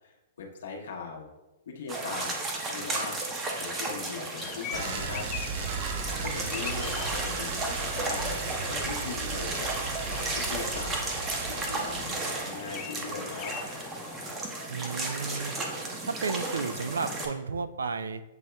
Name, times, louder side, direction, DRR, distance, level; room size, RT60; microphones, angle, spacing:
voice 1, 0.0-1.3 1.7-2.3 2.6-3.2 3.5-5.3 6.2-11.0 11.5-13.5, left 4 dB, 70° left, 0 dB, 0.9 m, -39 dB
sound 1, 1.9-17.3, right 2 dB, 20° right, 0.8 m, -34 dB
sound 2, 4.3-14.4, left 9 dB, 30° left, 0.3 m, -43 dB
sound 3, 4.7-12.1, right 5 dB, 50° right, 0.7 m, -36 dB
voice 2, 6.1-7.1 14.7-15.6 16.0-18.2, right 4 dB, 85° right, 11 dB, 0.3 m, -34 dB
7.6 x 2.8 x 2.2 m, 1.0 s
hypercardioid pair, 120°, 0 cm